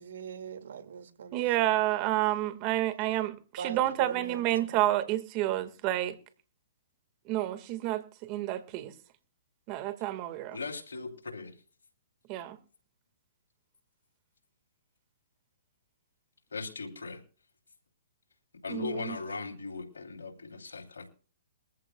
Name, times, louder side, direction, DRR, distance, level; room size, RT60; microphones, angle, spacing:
voice 1, 0.0-1.4 3.6-4.5, right 7 dB, 70° right, 2.2 m, -40 dB
voice 2, 1.3-6.2 7.2-8.9 9.7-10.6 12.3-12.6 18.7-19.2, right 15 dB, 35° right, 1.8 m, -29 dB
voice 3, 10.5-11.5 16.5-17.2 18.6-21.1, left 4 dB, 90° left, 3.1 m, -38 dB
21.5 x 14.5 x 2.3 m
hypercardioid pair, 140°, 0 cm